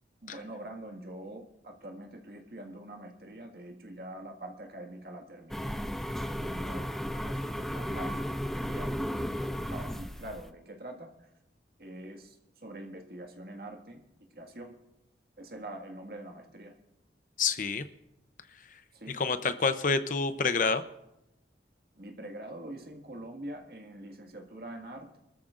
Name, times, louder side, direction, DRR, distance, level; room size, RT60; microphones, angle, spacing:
voice 1, 0.2-5.8 6.2-6.9 7.2-9.3 9.7-11.3 11.8-12.4 12.6-14.0 14.3-14.7 15.4-16.7 18.9-19.2 21.9-25.2, right 1 dB, 55° right, 3 dB, 1.9 m, -44 dB
sound 1, 5.5-10.5, equal, ahead, 0.4 m, -34 dB
voice 2, 17.4-17.9 19.1-20.8, left 4 dB, 45° left, 10 dB, 0.7 m, -28 dB
27.0 x 13.5 x 2.5 m, 0.88 s
head